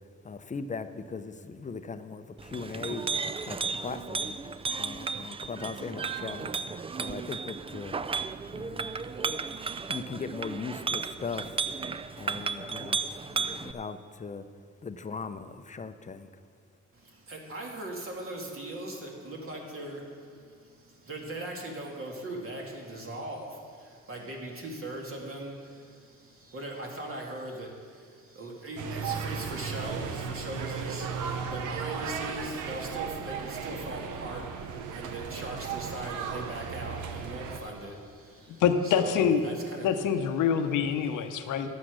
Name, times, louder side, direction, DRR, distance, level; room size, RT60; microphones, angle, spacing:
voice 1, 0.2-3.0 3.4-4.4 4.8-6.5 7.0-8.0 8.5-8.9 9.9-11.6 12.2-13.0 13.3-14.4 14.8-16.3, left 4 dB, 25° left, 10 dB, 0.6 m, -39 dB
Chink clink, 2.4-13.7, right 5 dB, 20° right, 0.4 m, -34 dB
voice 2, 16.9-39.9 41.3-41.5, right 1 dB, 45° right, -1 dB, 2.5 m, -40 dB
sound 1, 28.8-37.6, right 6 dB, 85° right, 0.9 m, -36 dB
voice 3, 38.6-39.4 39.8-41.7, left 7 dB, 85° left, 7 dB, 0.9 m, -25 dB
11.5 x 8.6 x 6.3 m, 2.1 s
cardioid pair, 90°, 30 cm